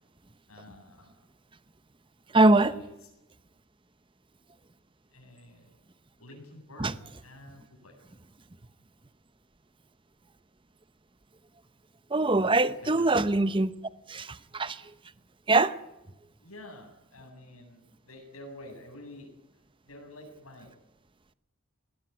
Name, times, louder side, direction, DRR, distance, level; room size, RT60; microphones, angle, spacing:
voice 1, 0.5-1.1 2.3-3.1 5.1-5.7 6.2-6.9 7.2-8.0 12.8-13.1 16.4-19.3 19.8-20.7, left 1 dB, 75° left, 8.0 m, -48 dB
voice 2, 2.3-2.7 6.8-6.9 12.1-13.7 14.1-14.8 15.5-15.7, right 2 dB, 25° right, 0.8 m, -23 dB
20.5 x 18.0 x 9.7 m
head